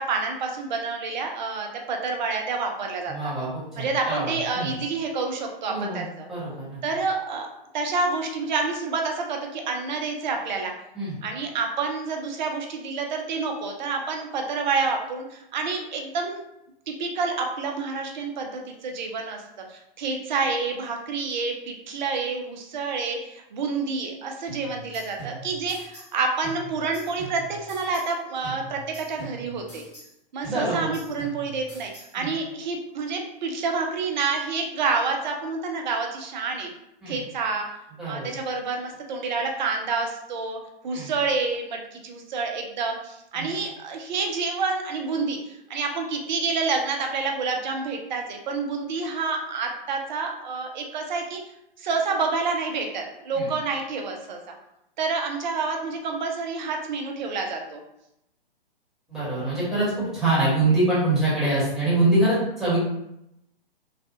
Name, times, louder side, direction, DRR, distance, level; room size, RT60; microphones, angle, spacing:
voice 1, 0.0-3.3 3.8-6.3 6.8-7.5 7.7-10.7 11.2-16.4 16.9-19.4 19.7-29.8 30.3-36.7 37.1-37.7 38.0-40.6 40.8-51.4 51.8-54.4 55.0-57.8, right 4 dB, 50° right, 2 dB, 0.7 m, -28 dB
voice 2, 3.1-4.7 5.7-6.8 10.9-11.1 30.5-31.0 32.2-32.3 37.0-37.2 38.0-38.3 40.9-41.1 43.3-43.5 53.3-53.5 59.1-62.8, right 2 dB, ahead, -11 dB, 1.4 m, -25 dB
sound 1, 24.5-26.2 26.4-28.2 28.4-30.2 30.4-32.2, right 3 dB, 20° left, 1.5 m, -42 dB
3.2 x 2.4 x 2.3 m, 0.82 s
figure-of-eight pair, 125°, 29 cm